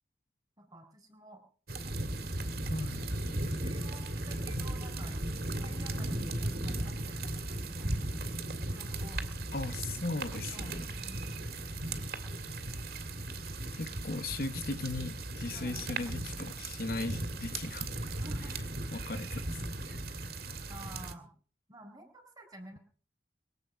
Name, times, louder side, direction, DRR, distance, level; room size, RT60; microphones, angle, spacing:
voice 1, 0.6-1.4 3.3-7.9 8.7-9.2 10.5-11.4 15.5-15.8 18.1-18.6 18.8-19.1 20.7-21.3 21.7-22.8, right 1 dB, 20° right, 3.9 m, -51 dB
sound 1, 1.7-21.1, right 1 dB, 55° right, 2.0 m, -36 dB
voice 2, 2.7-3.1 9.5-10.9 13.7-17.9 18.9-19.6 19.9-20.0, left 3 dB, 55° left, 1.0 m, -37 dB
22.5 x 8.4 x 6.4 m
head